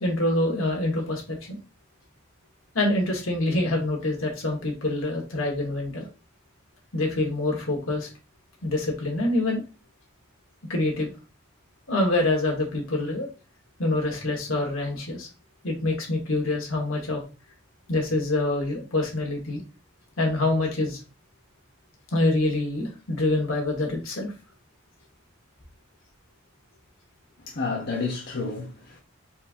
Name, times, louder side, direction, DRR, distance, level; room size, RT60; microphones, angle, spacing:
voice 1, 0.0-1.6 2.7-6.1 6.9-8.1 8.6-9.6 10.7-11.1 11.9-13.3 13.8-15.3 15.6-17.2 17.9-19.6 20.2-21.0 22.1-24.3, left 2 dB, 75° left, 1.5 m, -26 dB
voice 2, 27.4-29.0, left 4 dB, 50° left, 0.8 m, -30 dB
4.4 x 2.7 x 3.6 m
head